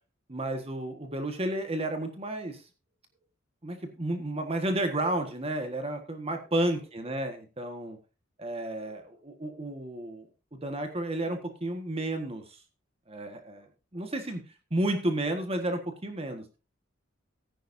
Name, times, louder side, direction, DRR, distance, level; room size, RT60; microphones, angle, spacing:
voice 1, 0.3-2.6 3.6-8.0 8.4-12.6 13.1-13.7 13.9-14.4 14.7-16.4, right 1 dB, 30° right, 6 dB, 1.5 m, -32 dB
15.5 x 9.9 x 2.7 m, 0.30 s
head